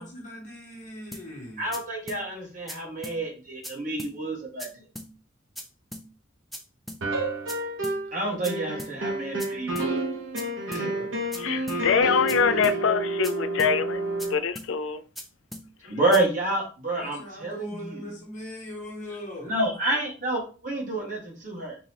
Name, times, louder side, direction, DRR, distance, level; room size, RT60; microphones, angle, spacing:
voice 1, 0.0-1.8 17.0-19.6, left 1 dB, 40° left, 1.2 m, -40 dB
sound 1, 1.1-1.3 1.7-1.8 2.1-2.2 2.7-2.8 3.0-3.2 3.6-3.7 4.0-4.1 4.6-4.7 5.0-5.1 5.6-5.7 5.9-6.1 6.5-6.6 6.9-7.0 7.5-7.6 7.8-8.0 8.4-8.5 8.8-8.9 9.4-9.5 9.8-9.9 10.4-10.5 10.7-10.9 11.3-11.4 11.7-11.8 12.3-12.4 12.6-12.8 13.2-13.3 13.6-13.7 14.2-14.3 14.6-14.7 15.2-15.3 15.5-15.7 16.1-16.2, equal, ahead, 0.5 m, -39 dB
voice 2, 1.6-4.7 8.1-10.0 10.7-11.1 12.2-12.7 15.8-18.0 19.4-21.8, right 2 dB, 40° right, 1.5 m, -29 dB
sound 2, 7.0-8.2 8.5-14.3, right 2 dB, 80° right, 1.0 m, -30 dB
voice 3, 11.4-14.0 14.3-15.0, left 6 dB, 80° left, 0.4 m, -24 dB
3.9 x 3.7 x 3.0 m
head